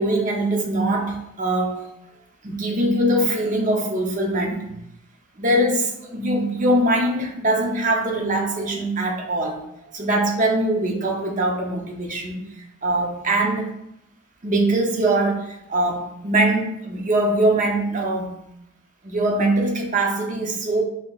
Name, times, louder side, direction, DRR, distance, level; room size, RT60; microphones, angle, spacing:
voice 1, 0.0-1.9 2.4-4.7 5.4-12.4 12.8-13.7 14.4-18.3 19.0-20.8, right 1 dB, 40° right, 1 dB, 0.7 m, -22 dB
5.5 x 2.9 x 2.4 m, 0.80 s
head